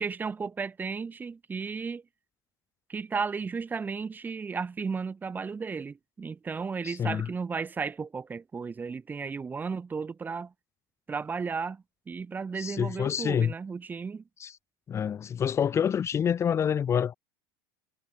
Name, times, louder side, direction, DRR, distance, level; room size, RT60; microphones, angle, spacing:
voice 1, 0.0-2.0 2.9-10.5 11.1-14.2, right 5 dB, 15° right, 3.4 m, -34 dB
voice 2, 6.8-7.3 12.5-13.5 14.4-14.6 14.9-17.1, left 8 dB, 25° left, 3.0 m, -27 dB
supercardioid pair, 140°, 11 cm